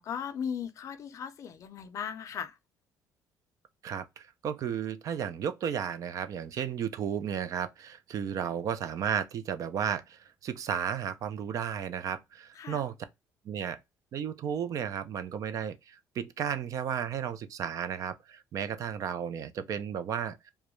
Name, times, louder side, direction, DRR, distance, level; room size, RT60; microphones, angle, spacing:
voice 1, 0.0-2.6 12.6-12.8, left 7 dB, 50° left, 0.4 m, -37 dB
voice 2, 3.8-12.9 13.5-13.8 14.1-20.5, right 8 dB, 50° right, 0.3 m, -33 dB
2.3 x 2.1 x 2.9 m
cardioid pair, 120°, 7 cm